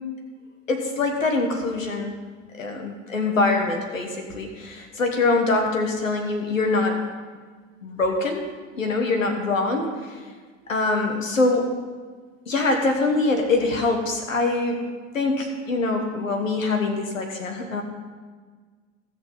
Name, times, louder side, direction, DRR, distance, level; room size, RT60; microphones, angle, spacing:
voice 1, 0.7-2.1 2.6-7.0 7.8-8.4 8.8-9.9 10.7-11.7 12.5-14.8 15.1-17.8, left 3 dB, 80° left, 3 dB, 1.3 m, -24 dB
15.5 x 6.5 x 5.4 m, 1.5 s
figure-of-eight pair, 70°, 39 cm